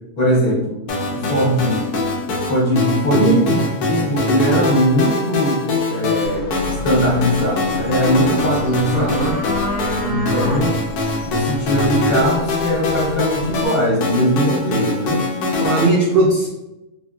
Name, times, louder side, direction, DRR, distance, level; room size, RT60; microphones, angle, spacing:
voice 1, 0.2-0.8 1.1-2.0 2.5-3.5 3.9-9.3 10.0-10.7 11.3-15.2 15.8-15.9, equal, 45° left, -5 dB, 1.1 m, -20 dB
sound 1, 0.9-15.9, left 2 dB, 85° left, 1.2 m, -22 dB
voice 2, 3.1-3.6 8.9-9.3 15.5-16.5, right 2 dB, 75° right, -5 dB, 0.5 m, -18 dB
sound 2, 6.2-13.7, equal, 65° left, 1.1 m, -31 dB
3.5 x 2.4 x 2.3 m, 0.95 s
omnidirectional pair, 1.6 m